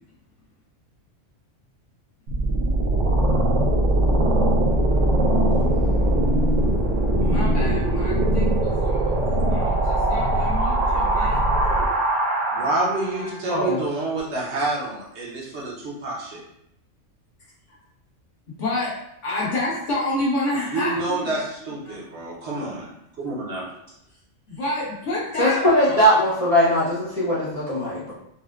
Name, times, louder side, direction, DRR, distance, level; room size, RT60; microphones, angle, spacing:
sound 1, 2.3-13.2, right 1 dB, 85° right, 1.1 m, -21 dB
voice 1, 7.2-9.2 9.5-11.4 12.8-13.8 15.5-15.6 17.7-17.8 18.6-21.4 21.8-22.0 24.5-26.2, left 2 dB, 70° left, -8 dB, 1.5 m, -29 dB
voice 2, 12.5-16.4 20.7-22.9 23.2-23.7, right 2 dB, 65° right, -4 dB, 1.1 m, -28 dB
voice 3, 13.5-13.8 25.4-28.1, equal, 40° left, -9 dB, 0.6 m, -20 dB
4.2 x 2.3 x 2.3 m, 0.78 s
omnidirectional pair, 1.3 m